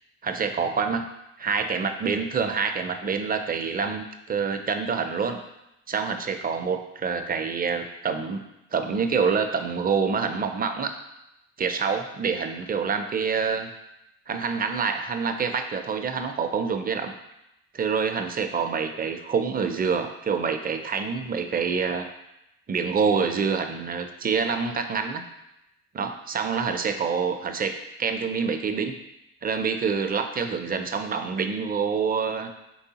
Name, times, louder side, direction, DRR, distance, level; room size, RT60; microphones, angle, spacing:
voice 1, 0.2-1.1 1.4-5.4 5.9-8.4 8.7-10.9 11.6-13.7 14.3-17.1 17.7-22.1 22.7-25.2 25.9-27.7 28.0-29.0 29.4-32.5, right 5 dB, 30° right, 6 dB, 0.4 m, -26 dB
4.6 x 3.3 x 2.8 m, 0.88 s
cardioid pair, 90°, 30 cm